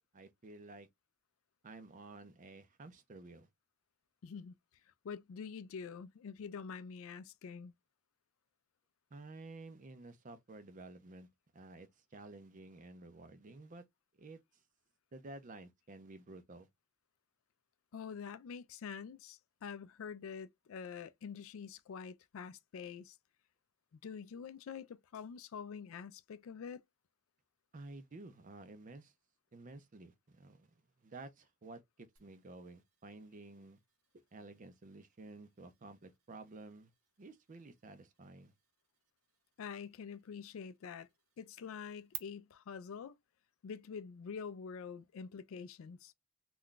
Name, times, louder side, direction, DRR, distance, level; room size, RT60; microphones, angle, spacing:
voice 1, 0.1-0.9 1.6-3.5 9.1-11.3 11.5-13.8 14.2-14.4 15.1-16.7 27.7-29.1 29.5-30.8 31.0-33.8 34.1-36.9 37.2-38.5, right 2 dB, 35° right, 0.5 m, -52 dB
voice 2, 4.2-4.5 5.0-7.7 17.9-23.2 23.9-26.8 39.6-41.1 41.4-43.1 43.6-46.1, left 6 dB, 65° left, 0.3 m, -46 dB
sound 1, 32.2-42.2, right 10 dB, 75° right, 0.7 m, -57 dB
2.3 x 2.2 x 3.7 m
head